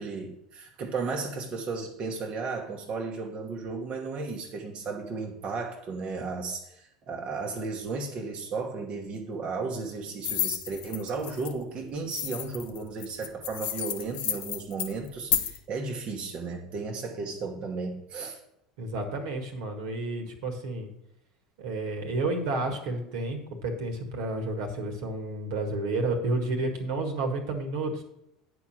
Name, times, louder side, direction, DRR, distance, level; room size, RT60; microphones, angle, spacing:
voice 1, 0.0-18.4, right 4 dB, 45° right, 1 dB, 1.2 m, -34 dB
sound 1, 10.2-11.5 12.1-15.6, left 10 dB, 55° left, 1.0 m, -31 dB
voice 2, 18.8-20.9 21.6-28.0, right 2 dB, 70° right, 4 dB, 1.7 m, -31 dB
9.3 x 4.8 x 5.9 m, 0.83 s
hypercardioid pair, 75°, 3 cm